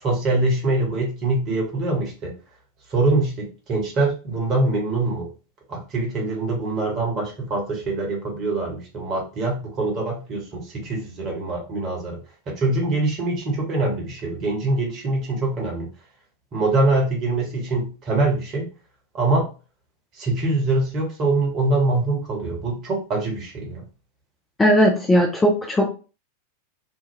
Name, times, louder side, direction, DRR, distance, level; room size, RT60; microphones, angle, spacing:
voice 1, 0.0-2.3 2.9-5.3 5.7-10.4 10.7-12.2 12.5-15.9 16.5-18.6 19.1-19.5 20.2-23.8, right 2 dB, 35° right, 0 dB, 1.2 m, -24 dB
voice 2, 24.6-25.9, equal, 10° left, 0 dB, 0.5 m, -17 dB
2.6 x 2.2 x 3.2 m, 0.33 s
figure-of-eight pair, 90°, 0 cm